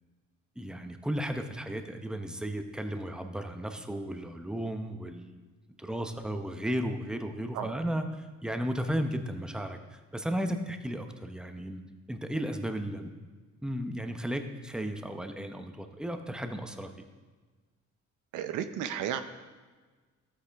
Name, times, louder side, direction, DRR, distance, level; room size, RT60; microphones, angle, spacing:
voice 1, 0.6-5.4 5.8-11.8 12.1-13.1 13.6-16.9, equal, 5° right, 6 dB, 0.8 m, -34 dB
voice 2, 18.3-19.2, right 9 dB, 90° right, 9 dB, 0.7 m, -33 dB
12.5 x 8.3 x 3.5 m, 1.4 s
cardioid pair, 90°, 30 cm